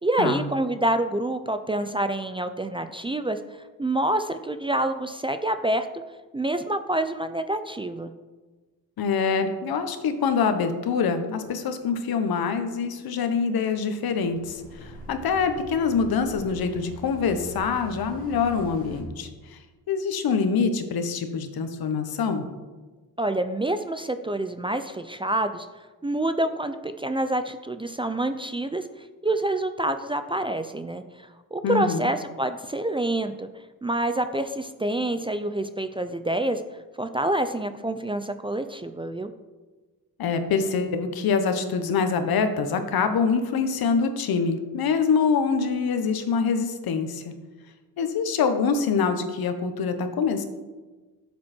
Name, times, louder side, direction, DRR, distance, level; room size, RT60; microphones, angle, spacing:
voice 1, 0.0-3.4 3.8-5.9 6.3-8.1 23.2-25.7 26.0-28.8 29.2-31.0 31.5-33.5 33.8-36.6 37.0-39.3, right 1 dB, 15° right, 9 dB, 0.5 m, -27 dB
voice 2, 9.0-19.6 19.9-22.5 31.6-32.1 40.2-47.3 48.0-50.4, left 5 dB, 65° left, 8 dB, 1.3 m, -25 dB
sound 1, 14.0-19.0, left 1 dB, 20° left, 3.3 m, -43 dB
12.0 x 7.6 x 4.4 m, 1.3 s
cardioid pair, 95°, 39 cm